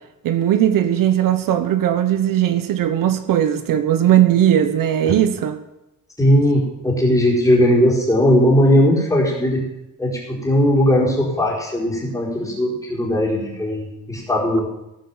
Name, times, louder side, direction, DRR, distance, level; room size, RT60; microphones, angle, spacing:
voice 1, 0.2-5.6, right 11 dB, 70° right, 1.1 m, -18 dB
voice 2, 6.2-9.6 10.0-14.7, equal, 10° left, 4.3 m, -18 dB
17.5 x 8.7 x 7.3 m
cardioid pair, 170°, 34 cm